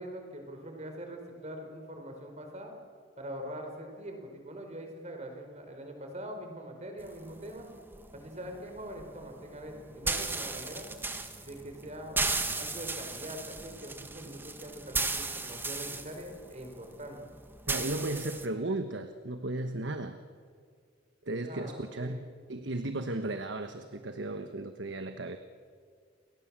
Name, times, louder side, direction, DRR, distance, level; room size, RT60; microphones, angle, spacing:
voice 1, 0.0-2.7 3.2-7.7 8.1-10.9 11.4-12.2 12.5-17.2 17.8-18.4 21.3-22.2, right 1 dB, 40° right, 4 dB, 4.5 m, -43 dB
sound 1, 7.0-18.5, right 3 dB, 10° right, 1.6 m, -36 dB
voice 2, 17.7-20.2 21.2-22.2 22.5-25.4, right 2 dB, 85° right, 8 dB, 1.3 m, -35 dB
30.0 x 23.5 x 7.5 m, 2.1 s
head